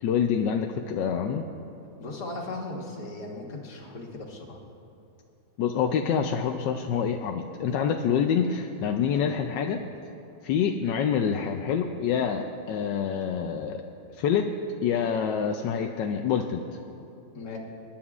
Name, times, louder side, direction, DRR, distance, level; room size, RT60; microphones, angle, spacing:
voice 1, 0.0-1.5 5.6-9.8 10.4-13.8 14.1-14.5 14.8-16.8, left 7 dB, 85° left, 4 dB, 1.3 m, -26 dB
voice 2, 2.0-4.6 17.3-17.6, left 2 dB, 65° left, 0 dB, 2.0 m, -37 dB
28.5 x 10.0 x 2.4 m, 2.7 s
omnidirectional pair, 1.9 m